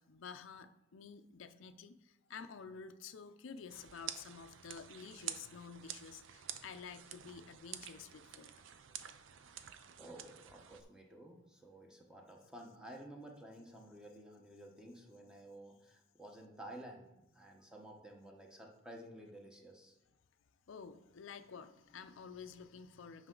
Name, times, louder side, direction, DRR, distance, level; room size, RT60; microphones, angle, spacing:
voice 1, 0.0-8.5 20.7-23.3, left 6 dB, 80° left, 10 dB, 0.5 m, -51 dB
sound 1, 3.7-10.8, right 10 dB, 80° right, 0.5 m, -49 dB
voice 2, 9.3-20.0, right 1 dB, 5° right, 1 dB, 1.0 m, -53 dB
8.8 x 5.5 x 3.8 m, 0.87 s
head